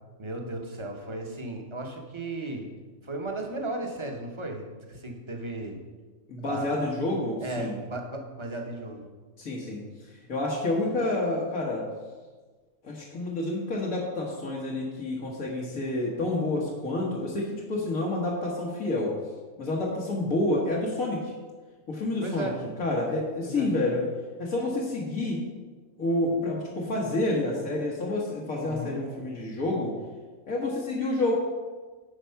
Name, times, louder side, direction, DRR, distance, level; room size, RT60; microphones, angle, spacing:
voice 1, 0.2-2.7 3.0-5.8 6.4-6.7 7.4-9.1 22.2-22.6 23.4-23.7 28.6-29.0, right 2 dB, 25° right, 2 dB, 1.0 m, -35 dB
voice 2, 6.3-7.8 9.4-9.8 10.1-11.8 12.8-19.1 19.6-21.3 21.9-22.5 22.8-24.1 24.4-25.4 26.0-29.9 30.5-31.4, left 2 dB, 90° left, -4 dB, 1.7 m, -29 dB
9.9 x 4.5 x 5.7 m, 1.4 s
omnidirectional pair, 1.4 m